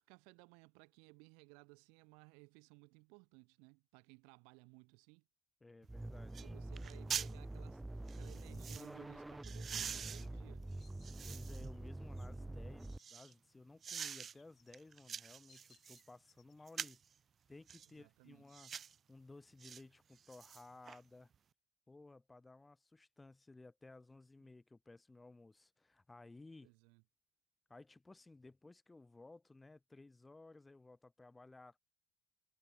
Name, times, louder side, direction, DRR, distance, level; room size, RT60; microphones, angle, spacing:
voice 1, 0.0-5.3 6.4-10.7 17.9-18.6 26.6-27.0, right 36 dB, 85° right, 4.1 m, -61 dB
voice 2, 5.6-6.5 11.2-17.0 17.5-21.3 21.9-26.7 27.7-31.8, left 2 dB, 15° left, 1.9 m, -58 dB
sound 1, 5.8-5.9 6.3-6.5 6.7-7.3 8.1-8.9 9.4-11.7 12.2-13.3 13.8-14.3 14.7-16.0 16.7-17.1 17.7-17.9 18.5-18.9 19.6-19.8 20.2-21.0 21.3-21.4, right 7 dB, 40° right, 0.6 m, -45 dB
sound 2, 5.9-13.0, right 2 dB, 10° right, 2.0 m, -46 dB
sound 3, 9.0-9.1 9.5-10.4 10.8-11.4 11.7-12.3 12.8-13.4 14.1-17.0 17.5-17.6 17.9-18.6 18.9-19.0 19.3-19.4, left 8 dB, 45° left, 5.0 m, -73 dB
supercardioid pair, 95°, 0 cm